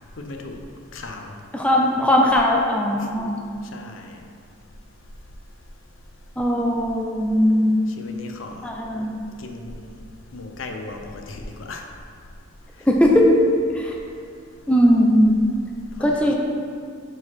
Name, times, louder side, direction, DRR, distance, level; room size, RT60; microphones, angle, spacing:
voice 1, 0.2-0.6 0.9-1.3 3.7-4.2 8.0-8.7 9.4-10.0 10.3-11.8 16.0-16.3, left 2 dB, 65° left, 3 dB, 0.6 m, -36 dB
voice 2, 1.5-3.3 6.4-7.7 8.6-9.2 12.9-13.4 13.7-13.9 14.7-15.4 16.0-16.3, equal, 5° left, -1 dB, 0.5 m, -18 dB
6.5 x 4.7 x 4.2 m, 2.3 s
head